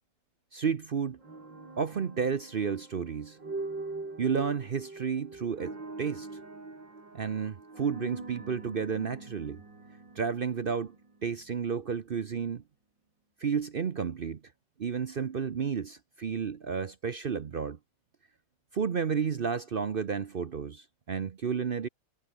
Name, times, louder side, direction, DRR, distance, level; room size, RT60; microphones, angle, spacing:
voice 1, 0.5-1.2 1.8-3.4 4.2-6.3 7.1-9.6 10.2-10.9 11.2-12.6 13.4-14.4 14.8-17.8 18.7-21.9, right 6 dB, 55° right, 0.6 m, -31 dB
sound 1, 1.2-11.3, right 3 dB, 75° right, 5.9 m, -43 dB
omnidirectional pair, 2.0 m